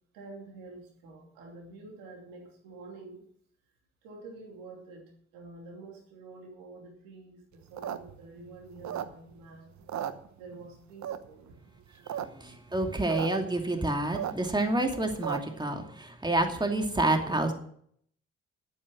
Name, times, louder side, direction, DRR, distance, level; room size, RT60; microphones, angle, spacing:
voice 1, 0.1-3.3 4.0-9.7 10.4-11.6 12.2-12.3, right 3 dB, 80° right, 1 dB, 2.9 m, -48 dB
sound 1, 7.6-9.5 9.8-10.7 11.0-11.5 11.9-12.3 12.5-12.6 12.8-13.3 13.6-15.6, right 10 dB, 55° right, 1.0 m, -35 dB
voice 2, 12.3-17.5, right 2 dB, 15° right, 4 dB, 2.6 m, -28 dB
12.0 x 9.0 x 6.3 m, 0.63 s
hypercardioid pair, 40°, 34 cm